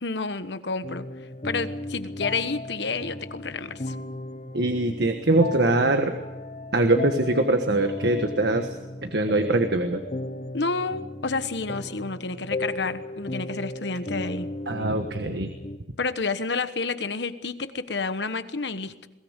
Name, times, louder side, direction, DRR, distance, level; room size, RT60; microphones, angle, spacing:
voice 1, 0.0-1.1 1.4-3.9 10.5-14.5 16.0-19.1, left 4 dB, 75° left, 11 dB, 1.2 m, -30 dB
sound 1, 0.8-15.8, left 1 dB, 40° left, 1.0 m, -36 dB
voice 2, 4.5-6.1 6.7-8.7 9.0-10.0 14.7-15.5, right 2 dB, 70° right, 6 dB, 1.5 m, -22 dB
22.0 x 17.5 x 8.2 m, 1.1 s
head